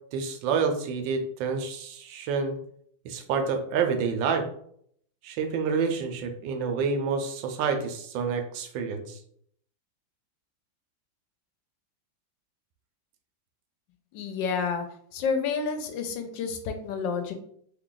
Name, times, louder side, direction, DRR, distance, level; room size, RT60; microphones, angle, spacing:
voice 1, 0.1-2.6 3.0-4.4 5.2-9.2, right 5 dB, 80° right, 5 dB, 1.3 m, -28 dB
voice 2, 14.1-14.9 15.1-17.3, left 5 dB, 80° left, 6 dB, 1.2 m, -29 dB
3.2 x 2.4 x 3.8 m, 0.66 s
omnidirectional pair, 2.1 m